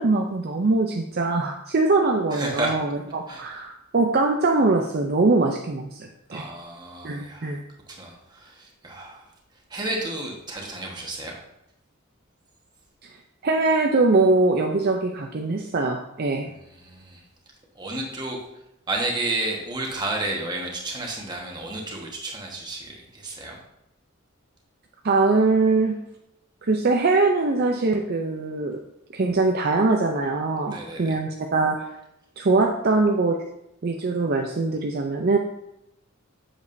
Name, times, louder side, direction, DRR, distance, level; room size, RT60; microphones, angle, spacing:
voice 1, 0.0-6.4 7.0-7.6 13.4-16.5 25.0-26.0 26.6-28.8 29.1-31.8 32.4-33.4 33.8-35.4, right 3 dB, 45° right, 2 dB, 0.5 m, -22 dB
voice 2, 2.3-2.8 3.3-3.5 6.3-7.5 7.9-9.3 9.7-11.3 16.4-17.2 17.7-18.4 18.9-23.6 30.7-31.2, right 2 dB, 20° right, -1 dB, 1.4 m, -31 dB
8.3 x 7.1 x 2.7 m, 0.84 s
head